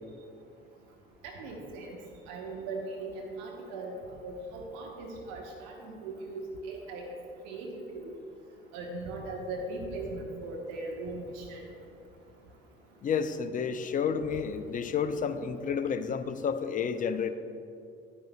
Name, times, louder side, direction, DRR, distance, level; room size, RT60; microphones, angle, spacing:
voice 1, 1.2-2.0 2.3-3.9 4.2-7.0 7.4-8.1 8.7-11.6, right 2 dB, 65° right, 0 dB, 1.2 m, -39 dB
voice 2, 13.0-17.3, left 6 dB, 25° left, 11 dB, 0.5 m, -30 dB
10.5 x 10.5 x 2.3 m, 2.6 s
figure-of-eight pair, 55°, 30 cm